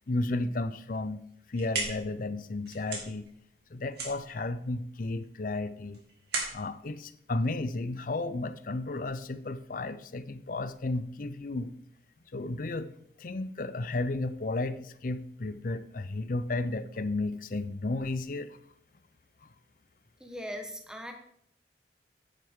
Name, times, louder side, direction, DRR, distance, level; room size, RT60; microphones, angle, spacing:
voice 1, 0.1-3.3 3.7-6.0 6.5-11.7 12.3-12.9 13.2-18.6 19.4-19.5, left 2 dB, 50° left, 13 dB, 0.6 m, -33 dB
sound 1, 1.3-8.2, right 3 dB, 60° right, 2.8 m, -39 dB
voice 2, 20.2-21.1, equal, 5° right, 4 dB, 1.1 m, -39 dB
9.4 x 9.2 x 3.7 m, 0.69 s
head